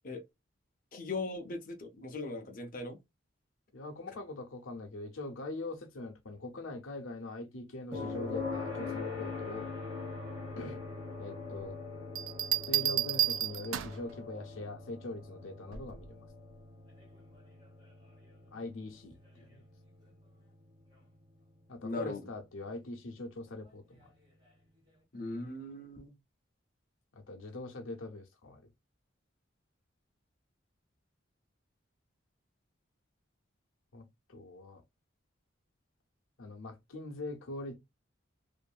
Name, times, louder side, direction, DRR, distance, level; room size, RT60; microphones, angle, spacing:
voice 1, 0.9-3.0 21.8-22.2 25.1-26.1, left 2 dB, 45° left, 0.6 m, -39 dB
voice 2, 3.7-9.7 10.6-10.8 11.2-11.8 12.7-16.3 18.5-19.6 21.7-24.1 27.1-28.7 33.9-34.8 36.4-37.8, left 2 dB, 85° left, 0.7 m, -43 dB
sound 1, 7.9-21.8 24.0-24.1, left 4 dB, 25° right, 1.0 m, -43 dB
Bell, 12.2-14.1 15.7-16.1, right 12 dB, 90° right, 0.3 m, -31 dB
2.6 x 2.5 x 2.2 m
head